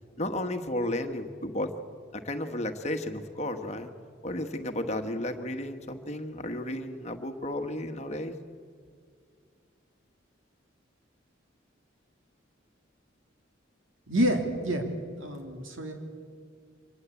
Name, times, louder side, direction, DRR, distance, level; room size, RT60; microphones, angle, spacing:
voice 1, 0.2-1.7 2.1-3.9 4.2-8.4, left 1 dB, 35° left, 6 dB, 1.5 m, -33 dB
voice 2, 14.1-14.8 15.1-15.9, equal, 85° right, 4 dB, 3.0 m, -28 dB
24.5 x 19.5 x 8.5 m, 2.1 s
head